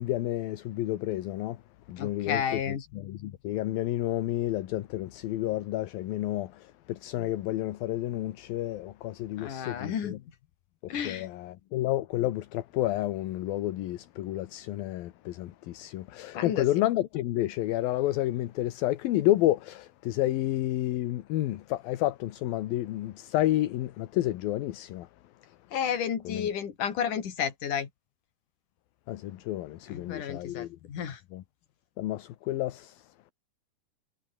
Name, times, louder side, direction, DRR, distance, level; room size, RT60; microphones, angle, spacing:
voice 1, 0.0-1.6 1.9-10.2 10.8-25.1 26.3-26.5 29.1-30.8 31.3-31.4 32.0-33.3, left 15 dB, 70° left, 2.7 m, -30 dB
voice 2, 2.0-2.8 9.4-10.1 10.9-11.3 16.3-16.7 25.7-27.9 29.9-31.2, left 8 dB, 55° left, 4.1 m, -32 dB
omnidirectional pair, 4.7 m